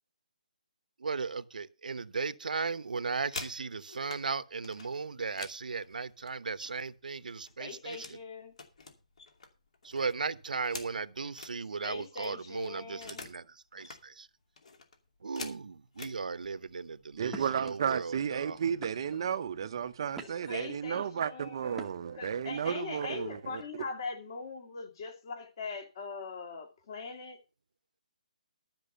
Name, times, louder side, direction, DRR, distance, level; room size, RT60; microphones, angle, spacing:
voice 1, 1.0-8.2 9.8-14.3 15.2-18.7, right 4 dB, 90° right, 0.9 m, -36 dB
sound 1, 3.0-4.2 4.6-7.0 7.3-8.2 8.5-11.6 11.9-12.0 12.2-13.4 13.7-14.0 14.6-16.2 17.0-17.2 17.5-17.8 18.1-18.7, left 4 dB, 55° left, 2.6 m, -47 dB
voice 2, 7.6-8.5 11.8-13.3 20.5-21.9 22.2-27.4, left 4 dB, 35° left, 2.3 m, -41 dB
sound 2, 16.7-16.8 17.3-17.7 18.4-18.5 18.8-19.3 19.8-20.6 21.7-22.2, right 2 dB, 5° right, 1.0 m, -46 dB
voice 3, 17.2-23.9, right 8 dB, 35° right, 0.7 m, -33 dB
12.5 x 6.1 x 6.7 m
hypercardioid pair, 175°, 4 cm